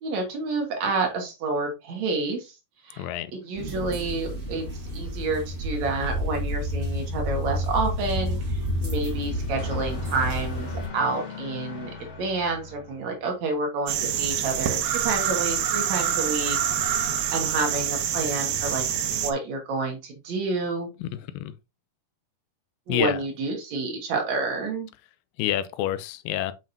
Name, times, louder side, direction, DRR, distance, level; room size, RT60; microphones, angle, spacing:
voice 1, 0.0-2.5 2.8-4.6 4.9-11.9 12.2-16.6 17.0-18.8 19.2-20.9 22.9-24.9, right 3 dB, 60° right, 2.4 m, -29 dB
voice 2, 3.0-3.3 21.0-21.1 21.3-21.5 22.9-23.2 25.4-26.5, left 12 dB, 85° left, 2.3 m, -27 dB
sound 1, 3.6-10.9, equal, 20° right, 2.5 m, -30 dB
sound 2, 8.9-13.5, left 4 dB, 55° left, 2.2 m, -41 dB
sound 3, 13.9-19.3, right 9 dB, 80° right, 1.4 m, -26 dB
7.3 x 5.6 x 2.7 m
omnidirectional pair, 4.0 m